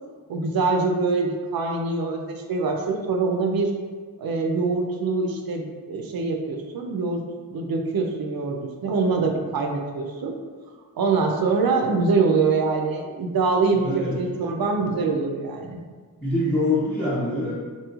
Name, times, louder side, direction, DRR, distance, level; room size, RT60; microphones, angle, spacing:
voice 1, 0.3-3.7 4.2-7.2 7.5-10.3 11.0-15.8, right 4 dB, 70° right, 3 dB, 0.5 m, -24 dB
voice 2, 13.7-14.2 16.2-17.5, left 1 dB, 10° right, -12 dB, 1.1 m, -24 dB
2.9 x 2.6 x 2.4 m, 1.5 s
cardioid pair, 60°, 37 cm